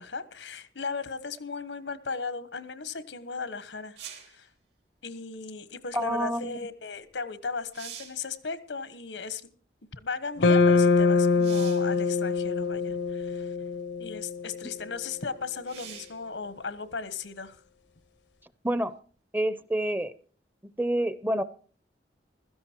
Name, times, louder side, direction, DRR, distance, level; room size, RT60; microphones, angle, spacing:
voice 1, 0.0-4.0 4.3-4.5 5.0-9.4 9.9-13.5 14.0-17.6, left 4 dB, 90° left, 1.2 m, -36 dB
sound 1, 4.0-4.4 7.1-7.2 7.6-8.3 11.4-11.9 13.0-13.1 15.6-16.2 19.8-19.9, right 9 dB, 70° right, 3.4 m, -44 dB
voice 2, 5.9-6.7 18.6-18.9 19.3-20.1 20.8-21.4, right 1 dB, 10° right, 0.6 m, -28 dB
sound 2, 10.4-14.7, left 4 dB, 75° left, 0.8 m, -24 dB
16.0 x 13.5 x 4.5 m
head